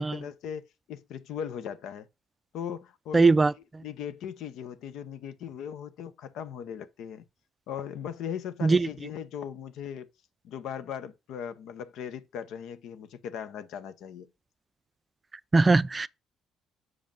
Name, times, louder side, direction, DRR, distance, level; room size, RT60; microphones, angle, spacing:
voice 1, 0.0-2.1 2.5-3.3 3.8-7.2 7.7-10.1 10.4-14.3, left 8 dB, 75° left, 0.7 m, -38 dB
voice 2, 3.1-3.5 8.6-8.9 15.5-16.1, right 3 dB, 25° right, 0.4 m, -20 dB
6.2 x 5.0 x 5.2 m
supercardioid pair, 65°, 0 cm